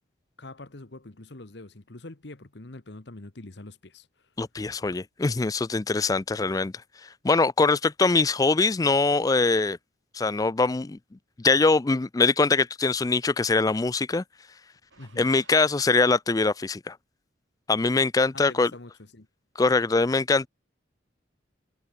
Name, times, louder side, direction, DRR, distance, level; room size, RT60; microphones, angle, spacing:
voice 1, 0.4-4.1 15.0-15.3 18.3-19.3, left 2 dB, 60° left, 1.4 m, -44 dB
voice 2, 4.4-6.7 7.2-9.8 10.1-11.0 11.4-14.2 15.2-17.0 17.7-18.7 19.6-20.5, left 3 dB, 20° left, 0.3 m, -23 dB
sound 1, 14.9-16.3 18.7-19.0, right 5 dB, 75° right, 7.9 m, -58 dB
head